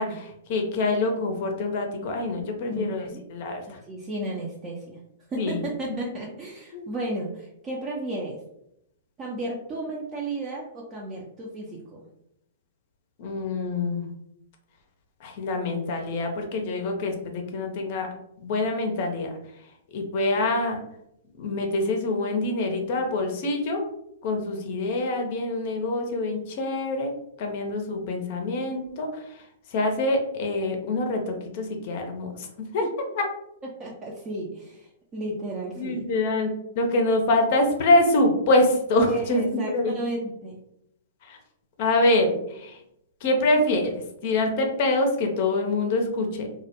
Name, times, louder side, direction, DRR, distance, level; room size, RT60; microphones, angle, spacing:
voice 1, 0.0-3.8 5.4-5.7 6.7-6.9 13.2-14.1 15.2-18.1 18.4-19.3 19.9-20.8 21.4-23.8 24.2-27.1 27.4-32.8 33.2-33.3 35.8-39.9 41.2-41.4 41.8-42.8 43.2-43.9 44.2-46.5, left 2 dB, 50° left, 3 dB, 0.5 m, -25 dB
voice 2, 2.7-3.2 3.6-5.0 5.3-8.4 9.2-12.1 32.8-32.9 33.8-36.0 39.1-40.6, right 1 dB, 25° right, -3 dB, 0.5 m, -34 dB
2.1 x 2.1 x 2.8 m, 0.78 s
hypercardioid pair, 115°, 0 cm